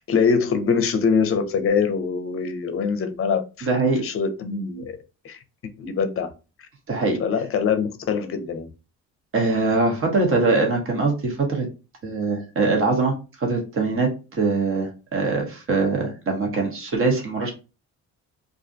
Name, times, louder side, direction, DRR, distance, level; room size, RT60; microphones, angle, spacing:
voice 1, 0.0-3.7 4.0-4.9 5.2-5.4 5.8-6.3 7.2-8.7, left 5 dB, 45° left, 0.6 m, -23 dB
voice 2, 3.6-4.0 6.9-7.2 9.3-11.7 12.0-17.5, right 3 dB, 45° right, 1.0 m, -22 dB
2.4 x 2.2 x 2.6 m
cardioid pair, 90°, 30 cm